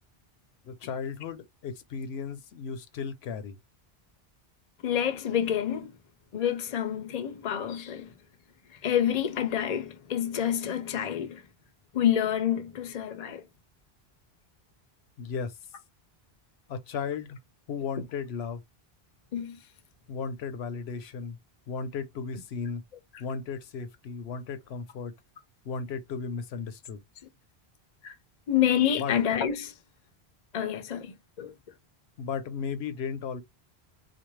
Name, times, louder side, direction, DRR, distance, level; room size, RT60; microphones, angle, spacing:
voice 1, 0.6-3.6 15.2-15.5 16.7-17.4 17.7-18.6 20.1-21.4 21.7-22.8 23.2-25.1 25.6-27.0 29.0-29.1 32.2-33.4, left 5 dB, 80° left, 0.9 m, -35 dB
voice 2, 4.8-6.0 6.3-8.1 8.8-11.4 11.9-13.4 19.3-19.6 28.0-28.1 28.5-29.7 30.5-31.5, left 9 dB, 45° left, 0.6 m, -28 dB
3.9 x 2.5 x 3.1 m
omnidirectional pair, 1.1 m